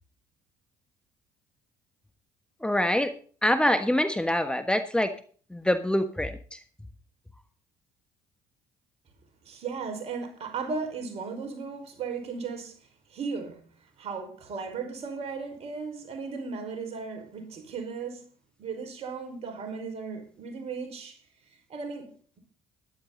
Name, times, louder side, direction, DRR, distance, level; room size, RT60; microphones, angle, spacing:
voice 1, 2.6-3.1 3.4-5.1 5.5-6.6, left 1 dB, 5° left, 1.4 m, -25 dB
voice 2, 9.4-12.7 13.1-13.7 14.0-18.3 18.6-21.2 21.5-22.4, right 5 dB, 55° right, 4.9 m, -36 dB
13.5 x 11.5 x 3.9 m
hypercardioid pair, 65°, 13 cm